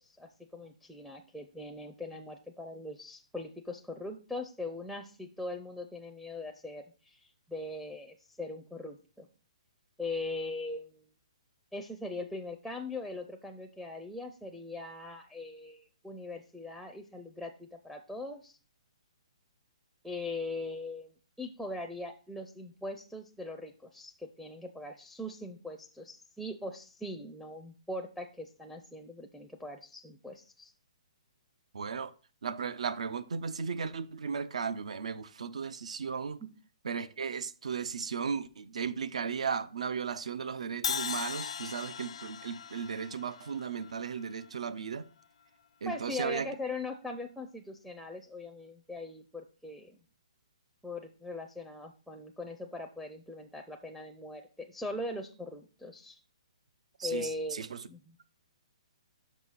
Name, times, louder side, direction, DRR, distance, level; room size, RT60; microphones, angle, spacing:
voice 1, 0.0-9.3 10.0-11.1 11.7-18.6 20.0-30.7 36.4-36.5 45.9-50.0 50.8-56.2 57.0-58.0, left 2 dB, ahead, 0.5 m, -41 dB
voice 2, 31.7-32.1 32.4-36.4 36.8-45.1 45.8-46.5 57.0-57.8, right 6 dB, 80° right, 0.6 m, -36 dB
Crash cymbal, 40.8-44.9, left 7 dB, 70° left, 0.4 m, -38 dB
6.3 x 5.1 x 4.0 m
hypercardioid pair, 150°, 3 cm